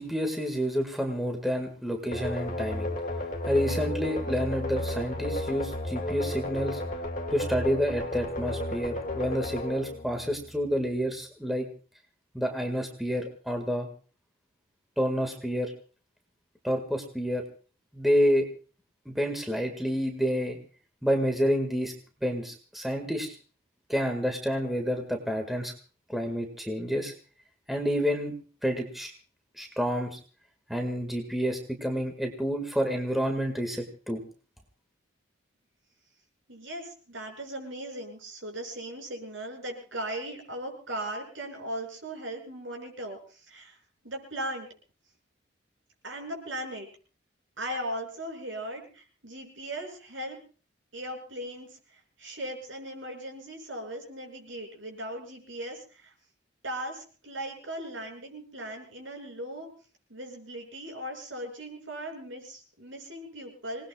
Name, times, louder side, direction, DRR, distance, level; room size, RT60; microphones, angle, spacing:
voice 1, 0.0-2.9 3.5-6.8 7.3-11.7 12.3-13.9 15.0-15.7 16.6-17.4 17.9-18.5 19.1-20.6 21.0-21.9 22.2-23.3 23.9-25.7 26.1-27.1 27.7-28.4 28.6-29.1 29.6-30.2 30.7-34.2, equal, ahead, 3 dB, 1.9 m, -29 dB
Bomber Bassline, 2.1-10.8, left 1 dB, 45° left, 2.1 m, -33 dB
voice 2, 36.5-43.8 44.0-44.7 46.0-46.9 47.6-50.4 50.9-56.1 56.6-59.7 60.1-63.9, right 1 dB, 80° right, 2 dB, 6.7 m, -38 dB
26.5 x 19.5 x 2.4 m, 0.38 s
head